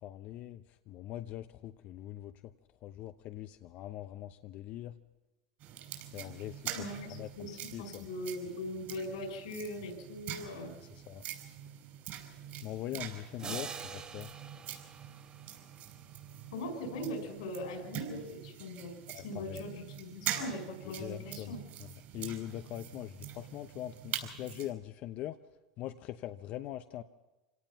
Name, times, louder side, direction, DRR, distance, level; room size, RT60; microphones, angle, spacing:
voice 1, 0.0-2.3 2.8-5.0 6.1-8.0 10.8-11.2 12.6-14.3 19.1-19.7 21.0-21.5 21.8-25.4 25.8-27.0, left 13 dB, 50° left, 8 dB, 0.9 m, -42 dB
sound 1, 5.6-24.7, right 11 dB, 50° right, 5.7 m, -44 dB
voice 2, 6.7-10.8 16.5-18.9 19.2-21.6, left 1 dB, 85° left, 3 dB, 5.3 m, -40 dB
sound 2, 13.4-15.9, right 5 dB, 25° right, 2.9 m, -44 dB
26.0 x 18.0 x 5.9 m, 1.1 s
supercardioid pair, 115°, 3 cm